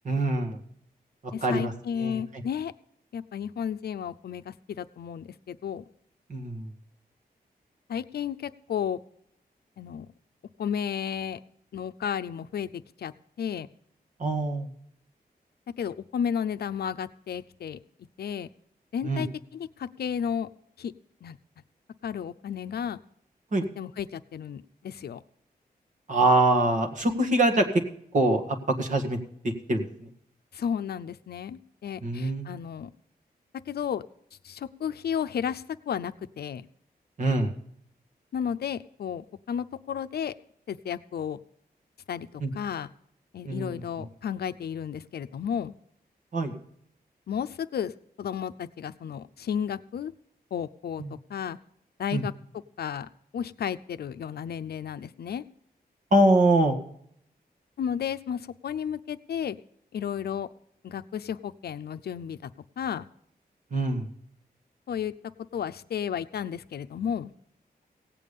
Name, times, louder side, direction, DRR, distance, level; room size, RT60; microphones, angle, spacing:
voice 1, 0.1-0.6 1.4-1.7 2.0-2.2 6.3-6.7 14.2-14.7 19.0-19.2 23.5-23.6 26.1-27.7 28.1-28.4 28.8-29.2 29.7-30.1 32.0-32.5 37.2-37.5 42.4-42.5 43.5-43.8 46.3-46.5 51.0-51.1 52.1-52.2 56.1-56.8 63.7-64.1, right 2 dB, 50° right, 3 dB, 1.9 m, -24 dB
voice 2, 1.3-2.7 3.1-5.8 7.9-9.0 9.8-10.1 10.6-11.4 11.7-13.1 13.4-13.7 15.8-17.8 18.2-18.5 18.9-20.5 20.8-20.9 21.2-21.4 22.0-23.0 23.8-25.2 30.5-32.9 33.7-34.0 34.4-36.7 38.3-40.4 40.7-41.4 42.1-42.9 43.3-45.7 47.3-47.9 48.2-50.1 50.5-51.0 51.3-51.6 52.0-52.3 52.8-55.4 57.8-59.6 59.9-60.5 60.8-62.5 62.8-63.1 64.9-65.1 65.5-67.3, left 8 dB, 75° left, 12 dB, 0.6 m, -33 dB
17.0 x 8.5 x 5.3 m, 0.69 s
wide cardioid pair, 150°, 16 cm